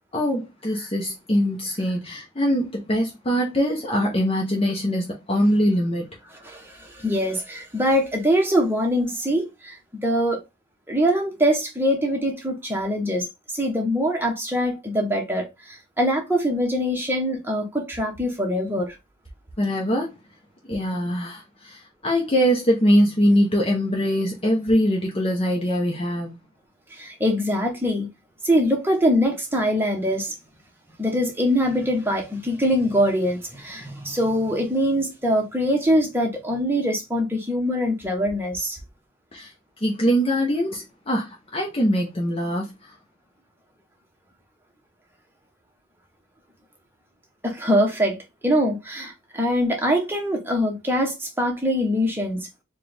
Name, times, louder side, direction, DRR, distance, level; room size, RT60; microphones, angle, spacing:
voice 1, 0.1-6.1 19.6-20.1 20.7-26.4 39.3-39.5 39.8-42.9, equal, 25° left, 0.7 m, -22 dB
voice 2, 6.4-10.4 10.9-13.3 13.5-19.0 26.9-28.1 28.4-30.3 31.0-38.8 47.4-48.2 48.4-52.5, equal, 10° right, 0.8 m, -23 dB
4.4 x 2.2 x 3.3 m
head